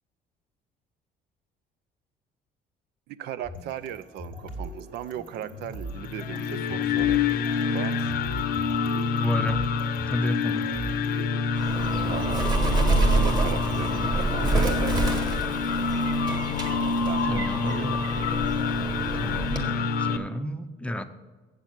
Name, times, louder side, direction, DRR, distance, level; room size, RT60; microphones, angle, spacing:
voice 1, 3.1-7.3 7.7-8.1 12.1-12.5 13.1-15.1 17.0-18.3, right 10 dB, 75° right, 14 dB, 0.5 m, -37 dB
sound 1, 3.4-11.3, right 1 dB, 55° right, 2.7 m, -40 dB
sound 2, 5.9-20.2, left 5 dB, 65° left, 0.7 m, -27 dB
voice 2, 9.2-9.7 10.1-10.7 17.2-17.9 19.1-21.0, equal, 5° left, 9 dB, 0.6 m, -31 dB
Bird, 11.5-19.8, right 2 dB, 25° right, 1.6 m, -27 dB
7.9 x 7.2 x 7.3 m, 1.4 s
cardioid pair, 110°, 17 cm